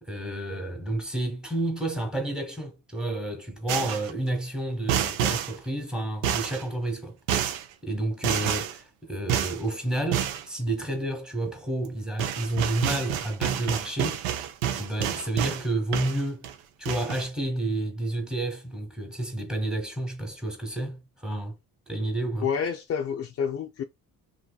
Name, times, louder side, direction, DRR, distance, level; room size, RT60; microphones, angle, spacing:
voice 1, 0.0-7.2 7.8-14.2 14.7-16.5 16.8-21.5 21.9-22.5, right 1 dB, ahead, 1.1 m, -30 dB
sound 1, 3.7-4.1 4.9-5.5 6.2-6.6 7.3-7.6 8.2-8.8 9.3-9.6 10.1-10.4 11.8-11.9 12.2-15.7 15.9-16.5 16.9-17.3, right 9 dB, 80° right, 0.6 m, -28 dB
voice 2, 22.4-23.8, left 7 dB, 35° left, 0.4 m, -28 dB
2.7 x 2.6 x 2.2 m
supercardioid pair, 60°, 45 cm